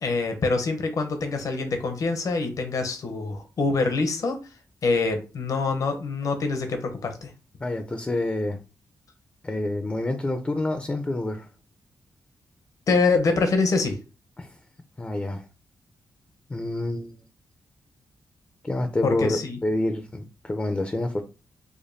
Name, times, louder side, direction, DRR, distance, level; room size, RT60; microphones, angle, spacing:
voice 1, 0.0-4.4 4.8-7.3 12.9-14.0 19.0-19.6, left 3 dB, 60° left, 6 dB, 0.7 m, -25 dB
voice 2, 7.6-8.6 9.4-11.5 14.4-14.5 15.0-15.4 16.5-17.2 18.6-21.2, left 2 dB, 20° left, 7 dB, 0.5 m, -27 dB
5.0 x 2.2 x 2.6 m, 0.33 s
cardioid pair, 95°, 7 cm